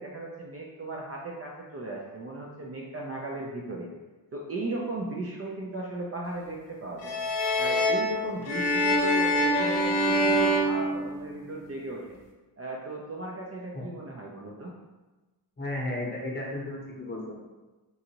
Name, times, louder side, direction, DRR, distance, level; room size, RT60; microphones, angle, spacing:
voice 1, 0.0-3.9 4.3-7.2 7.6-12.2 12.6-14.7, right 2 dB, 35° right, -2 dB, 0.5 m, -36 dB
sound 1, 7.0-11.6, equal, 70° left, 0.7 m, -25 dB
voice 2, 15.6-17.3, left 1 dB, 25° left, -4 dB, 0.8 m, -34 dB
3.9 x 2.4 x 2.8 m, 1.2 s
cardioid pair, 105°, 43 cm